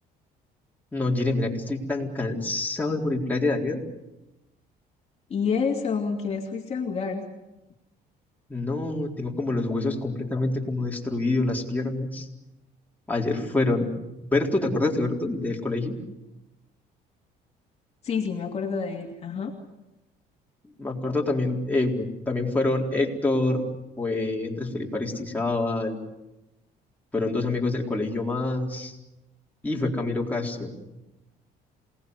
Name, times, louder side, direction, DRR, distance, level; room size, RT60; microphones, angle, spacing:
voice 1, 0.9-3.8 8.5-12.3 13.1-13.9 14.3-16.0 20.8-23.6 24.0-26.0 27.1-28.9 29.6-30.7, left 2 dB, 10° left, -2 dB, 4.2 m, -26 dB
voice 2, 5.3-7.2 18.0-19.5, left 5 dB, 40° left, 1 dB, 2.7 m, -28 dB
27.5 x 19.0 x 8.1 m, 0.95 s
cardioid pair, 110°, 17 cm